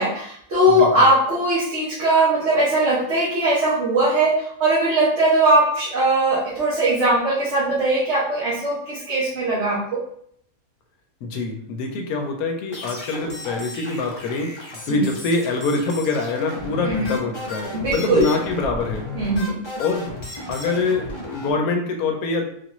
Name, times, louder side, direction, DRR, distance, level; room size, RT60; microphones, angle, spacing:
voice 1, 0.0-10.0 14.9-15.1 16.8-17.1 17.7-18.3 19.1-19.6, right 1 dB, 55° right, -8 dB, 1.2 m, -20 dB
voice 2, 0.7-1.1 11.2-19.0 19.8-20.2 20.5-22.4, left 3 dB, 85° left, 3 dB, 1.1 m, -25 dB
sound 1, 12.7-21.5, left 1 dB, 30° left, 0.5 m, -34 dB
3.6 x 2.5 x 3.0 m, 0.68 s
omnidirectional pair, 1.5 m